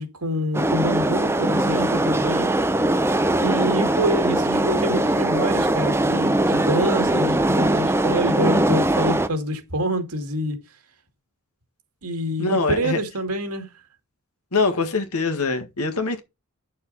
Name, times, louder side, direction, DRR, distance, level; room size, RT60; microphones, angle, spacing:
voice 1, 0.0-2.6 3.4-10.6 12.0-13.7, equal, 90° right, 2.4 m, -26 dB
sound 1, 0.5-9.3, right 1 dB, 10° right, 0.6 m, -21 dB
voice 2, 12.4-13.0 14.5-16.2, left 3 dB, 85° left, 1.8 m, -23 dB
9.8 x 6.5 x 4.2 m
head